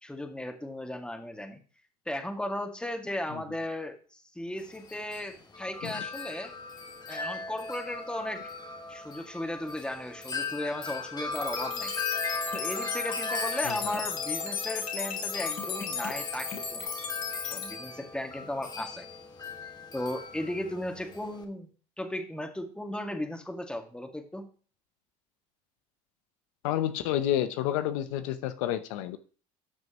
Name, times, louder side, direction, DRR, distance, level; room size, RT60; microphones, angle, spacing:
voice 1, 0.0-1.6 2.1-6.5 7.1-8.5 8.9-11.9 12.5-16.9 17.4-19.1 19.9-21.7 22.0-24.5, left 1 dB, 5° left, 4 dB, 2.0 m, -36 dB
Wind chime, 4.6-21.4, left 3 dB, 25° left, 1.7 m, -38 dB
sound 1, 11.3-17.7, left 6 dB, 55° left, 3.3 m, -35 dB
voice 2, 26.6-29.2, left 12 dB, 85° left, 11 dB, 0.8 m, -29 dB
13.0 x 6.1 x 3.0 m, 0.39 s
supercardioid pair, 80°, 16 cm